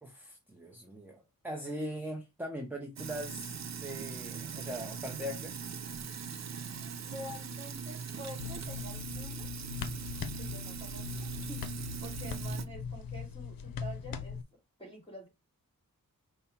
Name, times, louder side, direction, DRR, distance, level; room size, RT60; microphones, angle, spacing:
voice 1, 0.0-3.5 3.8-5.6, equal, 5° right, 0.7 m, -40 dB
Sink (filling or washing), 3.0-12.7, right 6 dB, 50° right, 0.5 m, -40 dB
voice 2, 7.0-9.5 10.4-14.4 14.8-15.3, equal, 15° left, 2.0 m, -48 dB
sound 1, 8.4-14.4, left 6 dB, 80° left, 0.6 m, -40 dB
5.4 x 2.2 x 4.3 m
wide cardioid pair, 130°, 34 cm